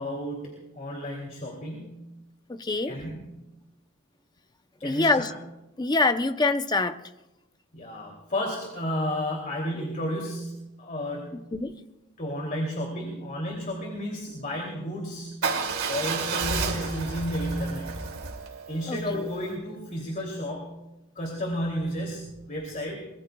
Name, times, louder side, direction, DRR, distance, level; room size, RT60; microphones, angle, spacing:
voice 1, 0.0-2.0 2.9-3.4 4.8-5.3 7.7-11.3 12.2-15.3 15.9-17.9 18.7-20.7 21.2-23.1, equal, 35° left, 0 dB, 2.8 m, -32 dB
voice 2, 2.5-2.9 4.8-5.3 5.8-7.0 11.5-11.7 18.9-19.3, left 3 dB, 20° left, 9 dB, 0.6 m, -25 dB
Motorcycle / Engine starting / Idling, 15.4-19.5, right 4 dB, 80° right, 2.6 m, -31 dB
23.5 x 21.5 x 2.3 m, 0.98 s
head